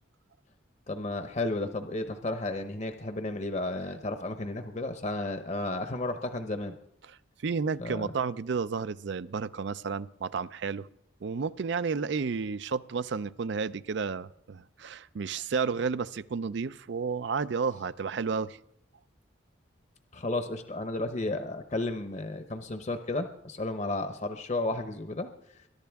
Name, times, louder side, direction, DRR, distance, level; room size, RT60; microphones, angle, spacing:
voice 1, 0.9-6.7 7.8-8.1 20.1-25.3, left 2 dB, 35° left, 7 dB, 0.8 m, -33 dB
voice 2, 7.4-10.9 11.2-18.6, right 5 dB, 60° right, 16 dB, 0.4 m, -32 dB
22.5 x 11.5 x 3.5 m, 0.78 s
head